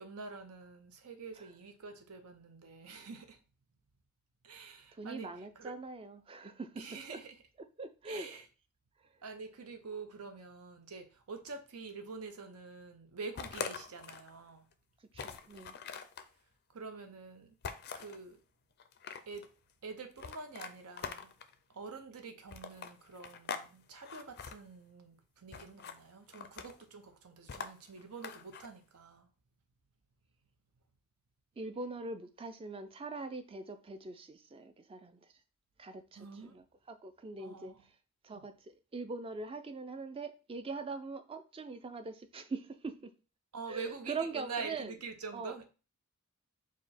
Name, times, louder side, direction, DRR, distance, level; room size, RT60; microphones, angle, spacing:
voice 1, 0.0-3.4 4.4-5.7 6.8-7.4 8.0-8.4 9.2-14.7 16.7-17.6 17.9-18.4 19.3-19.6 19.8-21.4 21.7-29.3 36.2-36.6 37.4-37.8 38.3-38.5 43.5-45.6, right 4 dB, 85° right, 0.7 m, -46 dB
voice 2, 4.9-7.2 7.6-8.4 15.1-15.8 31.6-35.3 35.8-37.9 38.2-43.1 43.7-45.0 45.3-45.5, right 3 dB, 25° right, 0.3 m, -43 dB
sound 1, 13.4-14.3 14.7-14.8 15.1-16.3 17.6-18.2 18.8-19.5 20.2-21.5 22.5-23.7 24.0-24.6 25.5-26.0 26.3-26.9 27.5-28.7, left 6 dB, 45° left, 0.4 m, -43 dB
4.9 x 2.2 x 4.2 m
head